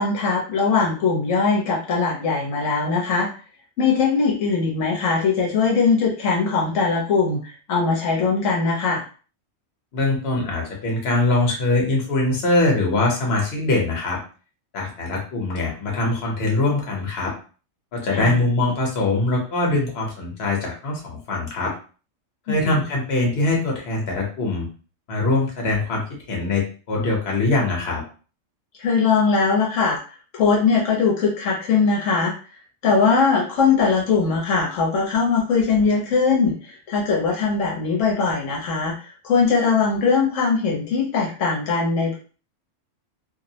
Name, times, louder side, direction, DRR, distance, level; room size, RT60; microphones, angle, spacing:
voice 1, 0.0-3.3 3.8-9.0 18.1-18.3 22.5-22.8 28.8-30.0 30.3-32.3 32.8-42.2, left 5 dB, 75° left, -2 dB, 1.1 m, -20 dB
voice 2, 9.9-14.2 14.7-17.3 17.9-21.7 22.5-24.7 25.1-28.0, left 2 dB, 55° left, -1 dB, 1.0 m, -22 dB
2.6 x 2.0 x 2.7 m, 0.38 s
omnidirectional pair, 1.3 m